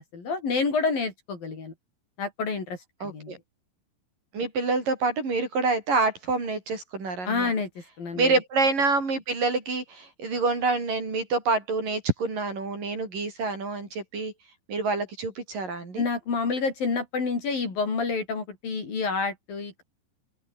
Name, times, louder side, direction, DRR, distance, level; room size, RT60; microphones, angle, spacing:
voice 1, 0.0-1.7 2.2-2.8 3.0-3.3 7.2-7.7 8.0-8.3 16.0-19.8, left 4 dB, 45° left, 6.6 m, -28 dB
voice 2, 3.0-3.4 4.3-7.5 8.2-14.3 14.7-16.0, right 3 dB, 45° right, 7.5 m, -27 dB
open air
omnidirectional pair, 5.6 m